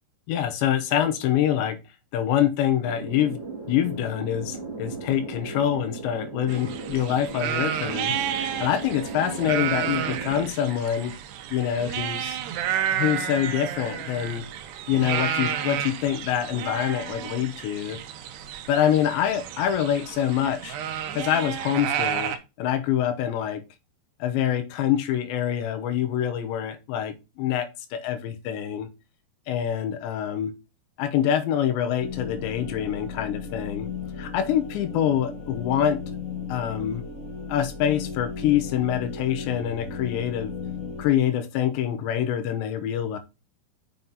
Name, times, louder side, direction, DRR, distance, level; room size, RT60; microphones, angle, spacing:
voice 1, 0.3-1.8 2.1-3.4 3.7-11.2 11.5-12.4 12.9-14.5 14.9-18.0 18.7-20.8 21.1-23.6 24.2-28.9 29.5-30.5 31.0-33.9 34.2-36.0 36.5-37.0 37.5-40.5 41.0-43.2, left 10 dB, 75° left, 3.1 m, -25 dB
sound 1, 2.8-10.5, right 4 dB, 15° right, 2.3 m, -37 dB
sound 2, 6.5-22.4, right 9 dB, 75° right, 2.7 m, -31 dB
sound 3, 32.0-41.0, left 4 dB, 60° left, 0.8 m, -36 dB
7.3 x 6.3 x 4.0 m
omnidirectional pair, 5.4 m